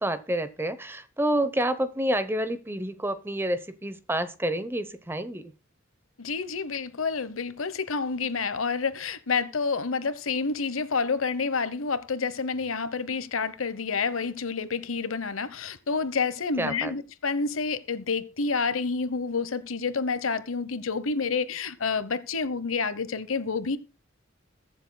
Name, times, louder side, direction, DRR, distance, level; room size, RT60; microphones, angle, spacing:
voice 1, 0.0-5.5 16.6-16.9, right 1 dB, 10° right, 0.8 m, -28 dB
voice 2, 6.2-23.8, left 4 dB, 90° left, 1.0 m, -29 dB
21.5 x 7.4 x 2.2 m
head